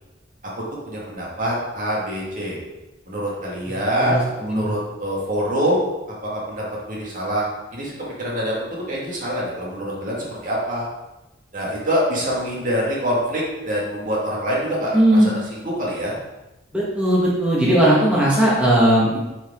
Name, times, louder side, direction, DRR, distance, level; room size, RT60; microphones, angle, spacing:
voice 1, 0.9-2.6 3.1-10.9 11.5-16.1, equal, 45° right, -5 dB, 2.0 m, -25 dB
voice 2, 4.0-4.7 14.9-15.3 16.7-19.2, right 1 dB, 5° right, -7 dB, 1.5 m, -17 dB
8.7 x 4.8 x 3.7 m, 1.0 s
head